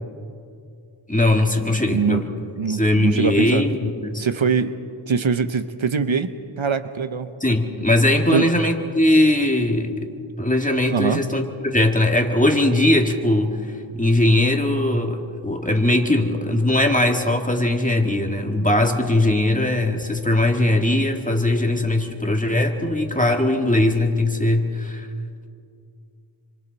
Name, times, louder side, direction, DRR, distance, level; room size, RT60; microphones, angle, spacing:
voice 1, 1.1-2.2 2.7-4.2 7.4-10.1 10.4-13.6 14.0-25.1, left 1 dB, 15° left, 3 dB, 2.0 m, -20 dB
voice 2, 1.9-2.2 2.6-3.6 4.2-4.8 5.1-7.3 8.3-8.5 10.9-11.2, right 6 dB, 65° right, 10 dB, 0.9 m, -23 dB
27.5 x 25.5 x 4.1 m, 2.4 s
wide cardioid pair, 45°, 50 cm